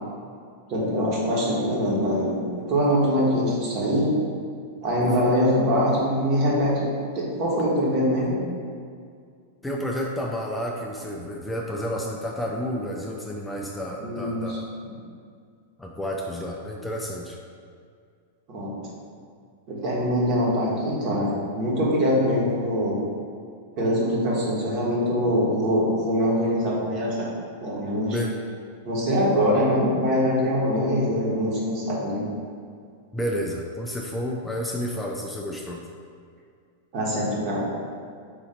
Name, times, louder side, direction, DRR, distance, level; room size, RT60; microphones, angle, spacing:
voice 1, 0.7-2.4 2.7-4.1 4.8-6.9 7.1-8.4 14.0-14.6 18.5-18.7 19.7-22.9 23.8-27.3 27.6-28.2 28.8-32.2 36.9-37.6, equal, 45° right, -5 dB, 1.3 m, -23 dB
voice 2, 5.0-5.3 9.6-14.7 15.8-17.4 28.1-28.3 33.1-35.8, equal, 10° left, -1 dB, 0.4 m, -30 dB
3.8 x 2.8 x 4.3 m, 2.2 s
hypercardioid pair, 110°, 0 cm